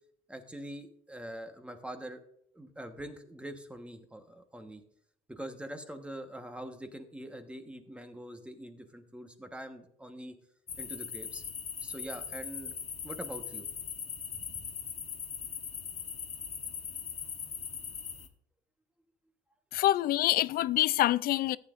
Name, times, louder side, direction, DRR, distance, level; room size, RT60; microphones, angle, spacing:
voice 1, 0.3-2.2 2.5-4.8 5.3-10.3 10.8-11.4 11.8-12.8 13.0-13.7 14.3-14.7, right 1 dB, 5° right, 1.2 m, -44 dB
sound 1, 10.7-18.3, left 6 dB, 40° left, 1.2 m, -40 dB
voice 2, 19.7-21.6, left 14 dB, 60° left, 0.4 m, -26 dB
14.5 x 9.1 x 2.5 m
cardioid pair, 110°, 17 cm